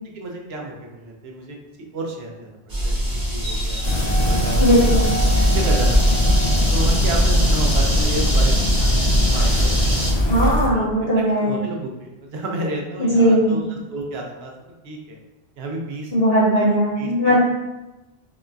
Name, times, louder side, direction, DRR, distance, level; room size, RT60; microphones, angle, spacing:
voice 1, 0.1-1.6 1.9-3.8 4.2-5.0 5.5-6.3 6.7-10.1 10.7-10.9 11.4-14.5 14.8-15.2 15.6-16.1 16.6-16.7 17.0-17.3, right 2 dB, 80° right, 0 dB, 0.8 m, -31 dB
sound 1, 2.7-10.1, equal, 25° right, 0.6 m, -24 dB
sound 2, 3.8-10.7, left 1 dB, 40° left, 0.4 m, -19 dB
voice 2, 4.6-5.1 10.3-11.6 13.0-13.6 16.1-17.4, equal, 70° left, -8 dB, 1.5 m, -18 dB
3.9 x 2.2 x 2.5 m, 1.1 s
omnidirectional pair, 1.1 m